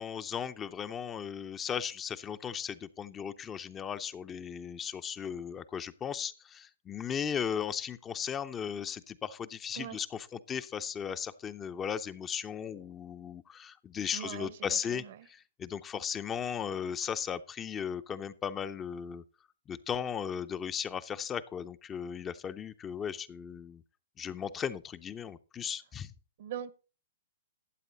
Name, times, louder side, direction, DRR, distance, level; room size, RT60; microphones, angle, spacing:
voice 1, 0.0-19.2 19.7-23.8 24.2-26.1, left 7 dB, 20° left, 0.5 m, -36 dB
voice 2, 14.1-15.3 26.4-26.7, right 10 dB, 55° right, 0.9 m, -41 dB
12.5 x 8.2 x 3.9 m
hypercardioid pair, 125°, 0 cm